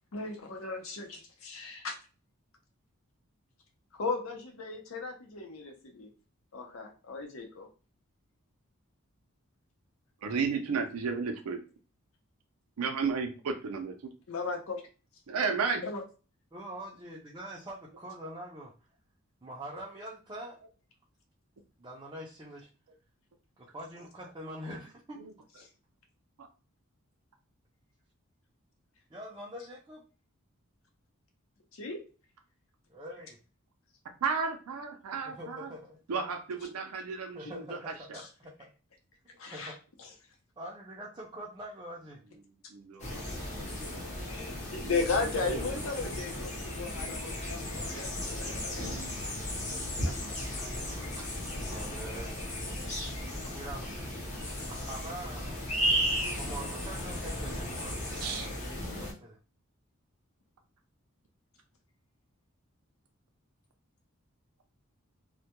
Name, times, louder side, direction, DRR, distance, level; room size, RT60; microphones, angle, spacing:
voice 1, 0.1-2.0 3.9-6.1 6.5-7.7 14.3-14.8 15.8-16.0 31.7-32.0 38.1-38.3 39.4-40.1 44.3-49.0 49.3-49.4 50.0-50.1, left 4 dB, 70° left, 2 dB, 0.6 m, -36 dB
voice 2, 10.2-11.6 12.8-14.1 15.3-15.8 25.2-25.3 26.4-26.5 34.2-35.7 36.1-38.2 42.7-43.2 43.8-44.0 44.8-44.9 50.6-50.7 51.2-51.3 58.2-58.5, right 5 dB, 90° right, 5 dB, 0.5 m, -33 dB
voice 3, 16.5-18.7 19.4-20.6 21.8-22.7 23.7-25.2 29.1-30.0 32.9-33.4 35.2-36.2 37.3-38.7 39.5-39.7 40.6-42.2 44.6-44.9 45.2-45.4 51.6-52.4 53.5-54.1 54.7-55.6 56.2-59.4, right 1 dB, 20° right, -5 dB, 0.4 m, -44 dB
sound 1, 43.0-59.1, equal, 35° left, 0.7 m, -35 dB
2.1 x 2.1 x 2.9 m, 0.34 s
head